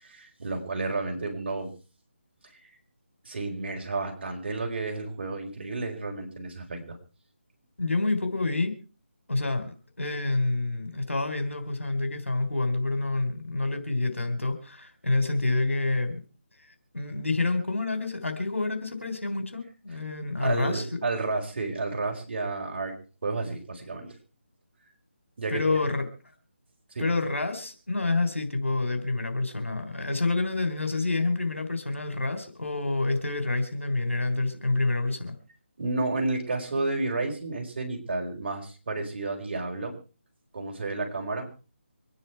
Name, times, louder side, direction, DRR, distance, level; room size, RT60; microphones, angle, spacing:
voice 1, 0.0-1.7 3.2-7.0 20.4-24.1 25.4-25.9 26.9-27.0 35.8-40.0 40.5-41.6, right 3 dB, 50° right, 4.8 m, -31 dB
voice 2, 7.8-8.7 9.3-16.2 16.9-20.9 25.5-26.1 27.0-35.4, left 2 dB, 80° left, 3.7 m, -28 dB
25.5 x 10.0 x 4.6 m
figure-of-eight pair, 155°, 7 cm